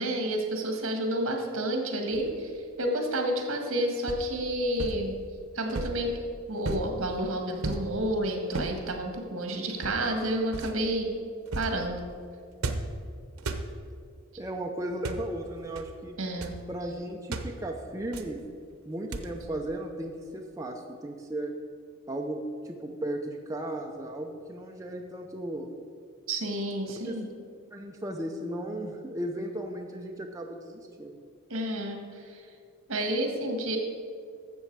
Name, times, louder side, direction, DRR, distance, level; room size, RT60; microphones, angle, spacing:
voice 1, 0.0-5.1 5.5-6.1 6.5-11.1 11.5-12.0 16.2-16.5 26.3-27.3 31.5-32.4 32.9-33.8, right 1 dB, 70° right, 3 dB, 1.6 m, -30 dB
sound 1, 2.1-2.5 4.1-4.3 4.8-5.0 5.7-6.1 6.6-7.0 7.6-7.9 8.5-8.8 9.8-10.1 10.5-10.8 11.5-11.8 12.6-13.0 13.4-13.7 14.9-15.3 15.8-15.9 16.2-16.6 17.3-17.5 18.1-18.4 19.1-19.4, right 2 dB, 90° right, 0.8 m, -35 dB
voice 2, 14.4-16.2 16.7-18.4 18.9-21.6 22.1-25.7 27.0-27.2 27.7-31.2, right 1 dB, 15° right, 1 dB, 0.6 m, -35 dB
12.5 x 7.4 x 4.7 m, 2.2 s
head